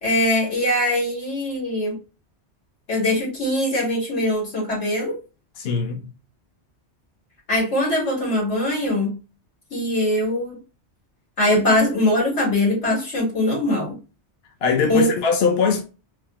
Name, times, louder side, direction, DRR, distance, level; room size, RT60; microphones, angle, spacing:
voice 1, 0.0-2.0 2.9-5.2 7.5-9.1 9.7-10.6 11.4-14.0 14.9-15.1, left 1 dB, 85° left, 2.5 m, -21 dB
voice 2, 5.6-6.1 14.6-15.8, left 5 dB, 65° left, 0.8 m, -21 dB
3.7 x 2.8 x 3.0 m
omnidirectional pair, 1.2 m